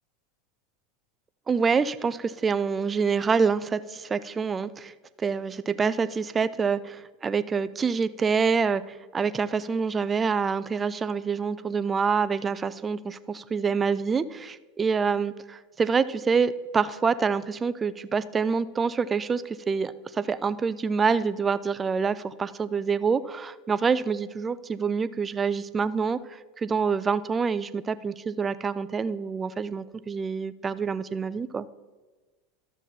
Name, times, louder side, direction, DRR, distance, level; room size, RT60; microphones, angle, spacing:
voice 1, 1.5-4.9 5.2-8.8 9.1-26.2 26.6-31.7, right 5 dB, 25° right, 15 dB, 0.4 m, -26 dB
12.0 x 6.9 x 4.2 m, 1.3 s
hypercardioid pair, 100°, 0 cm